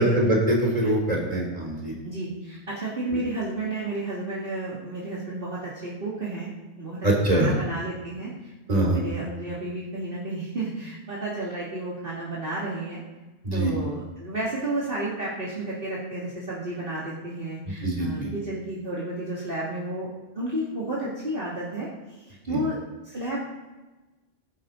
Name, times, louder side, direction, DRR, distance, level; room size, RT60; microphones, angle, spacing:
voice 1, 0.0-1.9 7.0-7.5 8.7-9.0 13.4-13.7 17.8-18.3 22.5-22.6, right 1 dB, 35° right, -1 dB, 3.6 m, -23 dB
voice 2, 2.0-13.0 13.5-20.1 20.3-22.8 23.0-23.4, right 2 dB, 50° right, -7 dB, 2.7 m, -32 dB
20.5 x 10.5 x 4.0 m, 1.2 s
omnidirectional pair, 1.1 m